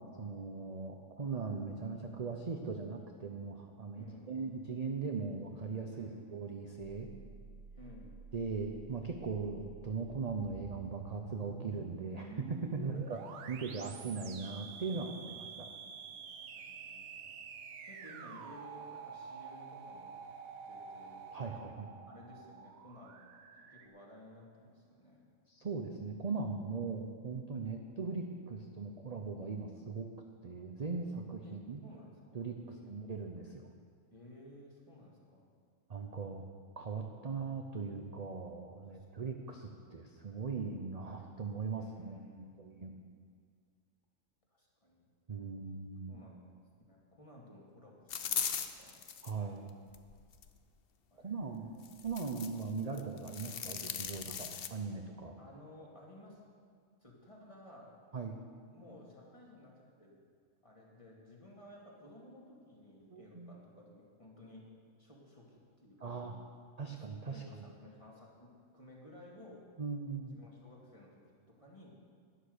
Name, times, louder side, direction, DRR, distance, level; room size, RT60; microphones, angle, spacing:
voice 1, 0.0-7.1 8.3-13.2 13.5-15.7 21.3-21.9 25.5-30.1 30.4-31.8 32.3-33.7 35.9-36.4 36.8-43.0 45.3-46.2 49.2-49.7 51.2-51.7 52.0-54.3 54.7-55.3 58.1-58.4 63.1-63.6 66.0-66.4 66.8-67.4 69.8-70.4, right 4 dB, 35° right, 3 dB, 0.7 m, -39 dB
voice 2, 3.9-4.5 5.9-6.3 7.8-8.2 12.7-13.1 14.9-16.3 16.5-17.3 17.8-20.2 20.6-21.8 22.1-23.2 23.6-25.3 31.4-31.6 31.8-32.9 34.1-35.5 38.9-39.1 41.8-42.8 44.5-45.1 46.1-46.5 46.9-49.0 51.1-51.8 54.3-54.5 55.4-56.4 57.0-57.9 58.5-60.2 60.6-64.6 65.0-66.2 66.9-67.0 67.3-69.6 70.2-72.0, left 1 dB, 25° left, -3 dB, 2.4 m, -56 dB
sound 1, 6.8-23.9, right 6 dB, 90° right, 1.3 m, -49 dB
sound 2, 48.1-49.3 49.9-50.5 51.8-52.6 53.0-54.7, left 8 dB, 55° left, 0.8 m, -38 dB
11.5 x 10.0 x 6.7 m, 2.2 s
omnidirectional pair, 1.4 m